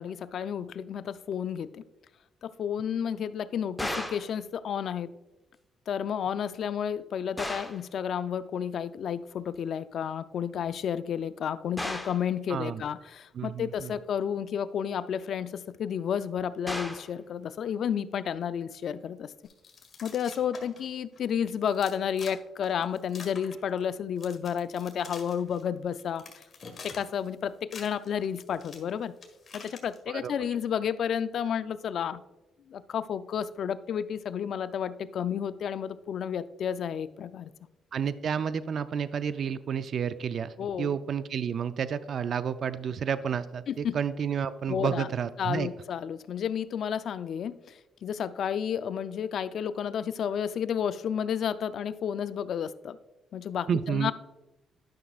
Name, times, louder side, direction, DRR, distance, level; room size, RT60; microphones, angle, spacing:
voice 1, 0.0-1.8 2.4-5.1 5.9-19.3 20.0-26.4 26.8-29.1 29.5-32.2 32.7-37.5 40.6-41.0 43.7-44.0 44.7-45.1 45.4-53.0 53.3-54.1, left 8 dB, 65° left, 14 dB, 0.4 m, -31 dB
sound 1, 3.8-4.3 7.4-7.9 11.8-12.3 16.7-17.1, left 1 dB, 5° left, 1.0 m, -34 dB
voice 2, 12.5-12.8 13.3-13.9 30.1-30.3 37.9-45.7 53.7-54.1, right 7 dB, 55° right, 13 dB, 0.3 m, -30 dB
sound 2, 19.4-20.9 21.1-21.2 21.6-22.4 22.6-23.9 24.2-25.6 26.0-27.3 27.5-30.0, left 4 dB, 45° left, 1.5 m, -46 dB
11.5 x 6.0 x 2.4 m, 1.0 s
cardioid pair, 90°, 0 cm